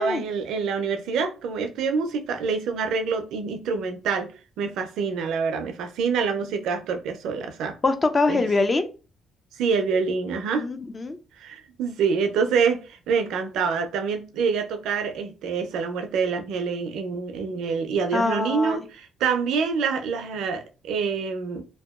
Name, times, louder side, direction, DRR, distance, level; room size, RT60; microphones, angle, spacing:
voice 1, 0.0-4.3 4.6-7.8 8.3-8.4 9.6-10.7 11.4-21.6, right 5 dB, 85° right, 7 dB, 0.4 m, -26 dB
voice 2, 7.8-8.9 10.5-11.2 18.1-18.8, left 3 dB, 30° left, 9 dB, 0.4 m, -24 dB
2.7 x 2.2 x 2.3 m, 0.33 s
cardioid pair, 90°, 0 cm